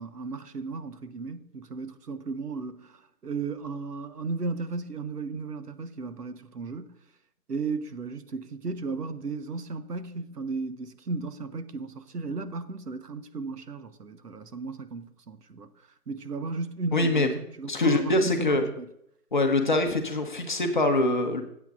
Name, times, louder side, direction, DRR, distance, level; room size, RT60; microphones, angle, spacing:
voice 1, 0.0-7.0 7.5-15.7 16.1-18.9, right 4 dB, 85° right, 1.2 m, -35 dB
voice 2, 16.9-17.3 17.7-18.7 19.3-21.4, left 2 dB, 30° left, 0.9 m, -24 dB
15.0 x 8.3 x 2.5 m
figure-of-eight pair, 165°, 46 cm